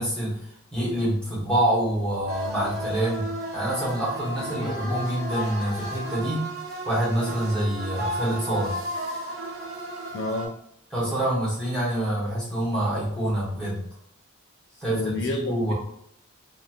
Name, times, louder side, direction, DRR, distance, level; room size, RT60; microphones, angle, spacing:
voice 1, 0.0-3.3 3.5-6.5 6.8-8.8 10.9-13.9 14.8-15.7, right 1 dB, 5° left, -8 dB, 1.0 m, -26 dB
sound 1, 2.3-10.5, right 1 dB, 70° right, 0.7 m, -33 dB
voice 2, 4.6-5.0 10.1-10.6 14.9-15.7, left 2 dB, 55° left, 1 dB, 0.3 m, -30 dB
2.8 x 2.4 x 2.3 m, 0.71 s
head